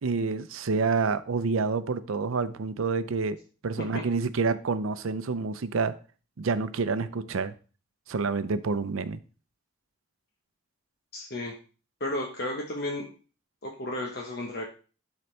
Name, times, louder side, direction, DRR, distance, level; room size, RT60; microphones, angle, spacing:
voice 1, 0.0-3.4 3.6-5.9 6.4-7.5 8.1-9.2, right 4 dB, 90° right, 13 dB, 0.6 m, -28 dB
voice 2, 11.1-11.5 12.0-13.1 13.6-14.6, left 1 dB, 50° left, -1 dB, 1.0 m, -33 dB
12.0 x 4.0 x 3.2 m, 0.36 s
head